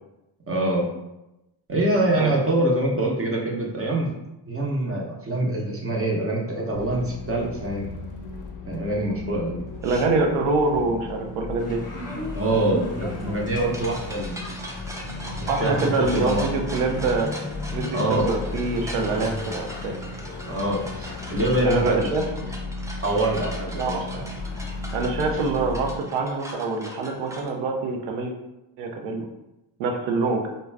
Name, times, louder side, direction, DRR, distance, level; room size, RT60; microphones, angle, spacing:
voice 1, 0.5-0.8 1.7-4.1 4.5-7.9 8.7-9.6 11.9-14.5 15.6-16.5 17.9-18.3 20.5-22.1 23.0-24.2, right 1 dB, 25° right, -2 dB, 0.7 m, -25 dB
sound 1, 6.7-26.0, left 3 dB, 40° left, 0.5 m, -36 dB
sound 2, 9.8-10.1 12.0-27.5, equal, 5° right, 0.4 m, -40 dB
voice 2, 9.8-11.8 15.5-17.3 17.7-20.0 21.6-22.5 23.7-24.0 24.9-28.3 28.8-29.3 29.8-30.5, right 3 dB, 85° right, 2 dB, 0.6 m, -25 dB
sound 3, 11.6-21.9, left 2 dB, 15° left, 1.0 m, -37 dB
2.3 x 2.1 x 3.3 m, 0.94 s
supercardioid pair, 55°, 50 cm